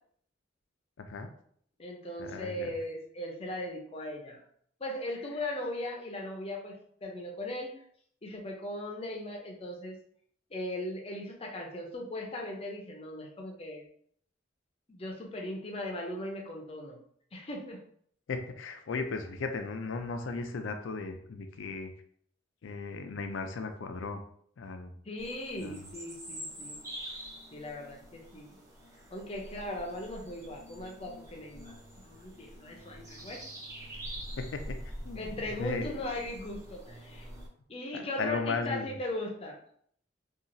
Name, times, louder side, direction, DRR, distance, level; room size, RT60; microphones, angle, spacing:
voice 1, 1.0-1.3 2.2-2.7 18.3-21.9 22.6-24.2 24.6-24.9 25.6-25.8 34.4-34.8 35.0-35.9 37.9-38.9, left 4 dB, 90° left, 6 dB, 0.4 m, -36 dB
voice 2, 1.8-4.4 4.8-7.7 8.2-10.0 10.5-13.8 14.9-17.0 17.3-17.8 25.1-26.8 27.5-28.6 29.1-33.4 35.1-37.3 37.7-39.6, left 1 dB, 30° left, 1 dB, 0.5 m, -38 dB
sound 1, 25.2-37.5, equal, 15° right, 0.6 m, -45 dB
2.8 x 2.4 x 2.6 m, 0.63 s
head